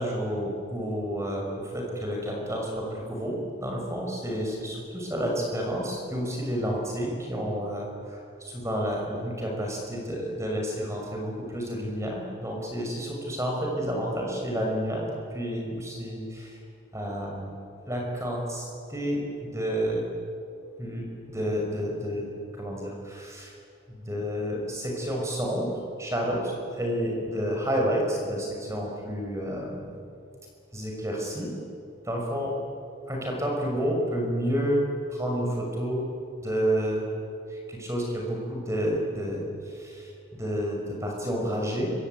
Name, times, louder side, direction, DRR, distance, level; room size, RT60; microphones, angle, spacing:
voice 1, 0.0-16.6 16.9-17.6 17.9-20.0 20.8-22.3 22.5-23.5 23.9-25.7 26.0-30.0 30.7-31.5 32.0-32.5 33.1-36.0 36.4-37.1 37.5-41.9, equal, 15° right, 0 dB, 6.2 m, -30 dB
26.0 x 24.5 x 9.2 m, 2.5 s
head